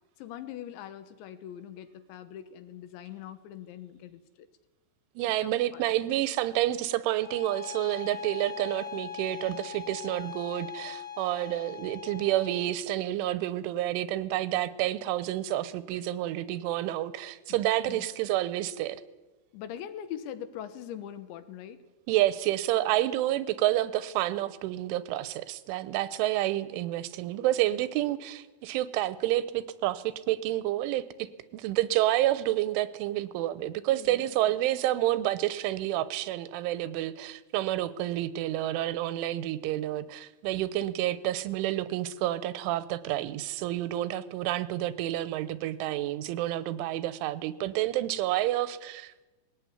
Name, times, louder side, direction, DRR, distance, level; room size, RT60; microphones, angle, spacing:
voice 1, 0.2-4.5 5.4-5.8 17.8-18.1 19.5-21.8 33.9-34.3, left 10 dB, 75° left, 11 dB, 3.4 m, -42 dB
voice 2, 5.2-19.0 22.1-49.3, right 14 dB, 90° right, 15 dB, 3.4 m, -29 dB
Bowed string instrument, 7.2-12.8, left 8 dB, 35° left, 3.1 m, -41 dB
20.5 x 17.5 x 9.5 m, 1.1 s
omnidirectional pair, 5.4 m